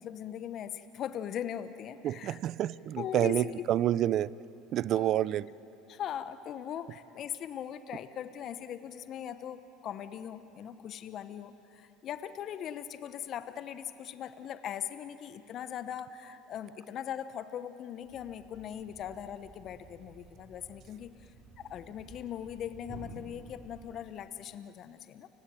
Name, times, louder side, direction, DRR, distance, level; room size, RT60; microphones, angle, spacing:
voice 1, 0.0-2.4 3.0-3.5 4.9-5.1 5.9-25.3, left 9 dB, 50° left, 12 dB, 1.0 m, -40 dB
voice 2, 2.0-4.3 4.7-5.5, right 12 dB, 55° right, 21 dB, 0.5 m, -28 dB
Thump thud, 18.0-24.2, right 3 dB, 30° right, 6.0 m, -52 dB
30.0 x 16.5 x 9.1 m, 2.9 s
hypercardioid pair, 80°, 0 cm